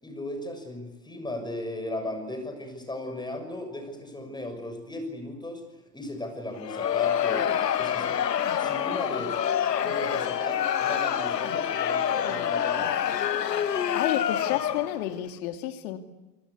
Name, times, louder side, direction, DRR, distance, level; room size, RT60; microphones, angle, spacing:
voice 1, 0.0-5.6 5.9-7.5 7.8-8.2 8.6-9.4 9.8-13.1, left 1 dB, 10° left, 6 dB, 6.5 m, -36 dB
Crowd, 6.5-15.0, left 9 dB, 85° left, 1.2 m, -27 dB
voice 2, 13.9-16.0, left 13 dB, 60° left, 7 dB, 2.6 m, -30 dB
27.5 x 20.5 x 8.3 m, 1.1 s
hypercardioid pair, 85°, 48 cm